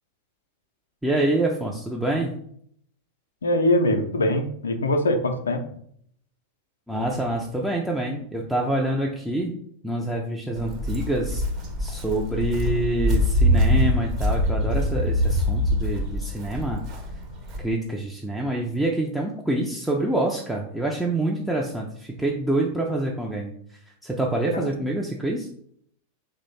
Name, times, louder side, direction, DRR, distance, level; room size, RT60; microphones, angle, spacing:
voice 1, 1.0-2.3 6.9-9.5 9.8-11.4 11.8-16.8 17.6-25.5, right 1 dB, ahead, -2 dB, 0.4 m, -26 dB
voice 2, 3.4-5.6 24.5-24.8, left 1 dB, 70° left, 7 dB, 0.4 m, -23 dB
Walk footsteps, 10.5-17.6, equal, 35° right, 0.7 m, -24 dB
3.0 x 2.0 x 4.0 m, 0.66 s
figure-of-eight pair, 90°, 0 cm